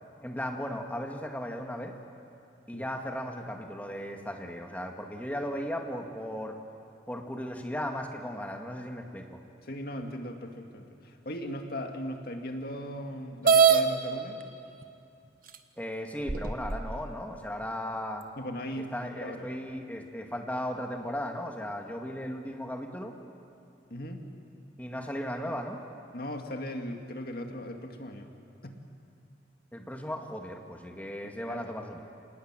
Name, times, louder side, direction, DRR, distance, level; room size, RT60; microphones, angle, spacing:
voice 1, 0.2-1.9 2.7-6.6 7.1-9.4 15.8-18.3 18.7-23.2 24.8-25.8 29.7-32.0, equal, 10° left, 3 dB, 1.9 m, -36 dB
voice 2, 9.6-14.4 18.4-19.5 23.9-24.3 26.1-28.3 28.6-28.8 31.5-31.6, equal, 55° left, 4 dB, 2.2 m, -38 dB
sound 1, 13.4-13.8 14.8-14.9 15.5-15.6 16.3-17.0, right 6 dB, 50° right, 1.3 m, -21 dB
26.5 x 19.5 x 9.0 m, 2.7 s
head